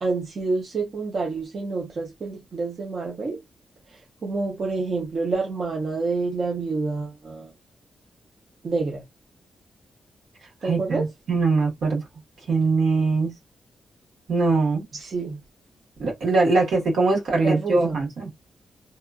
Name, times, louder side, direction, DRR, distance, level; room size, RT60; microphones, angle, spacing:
voice 1, 0.0-3.4 4.2-7.5 8.6-9.0 10.6-11.1 14.9-15.4 17.4-18.0, right 3 dB, 45° right, 0.7 m, -28 dB
voice 2, 10.6-12.0 12.5-13.3 14.3-14.9 16.0-18.3, right 3 dB, 75° right, 1.5 m, -22 dB
2.8 x 2.4 x 2.4 m
wide cardioid pair, 155°, 0 cm